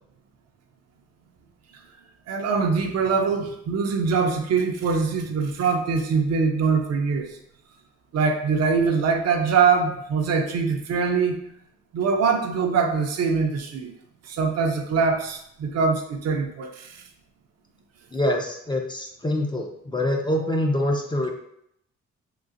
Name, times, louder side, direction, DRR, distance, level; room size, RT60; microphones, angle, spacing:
voice 1, 2.3-7.4 8.1-11.4 11.9-13.9 14.2-17.0, right 5 dB, 55° right, 4 dB, 0.6 m, -23 dB
voice 2, 18.1-21.3, left 1 dB, 15° left, 1 dB, 0.4 m, -25 dB
3.8 x 2.4 x 2.5 m, 0.73 s
cardioid pair, 90°, 30 cm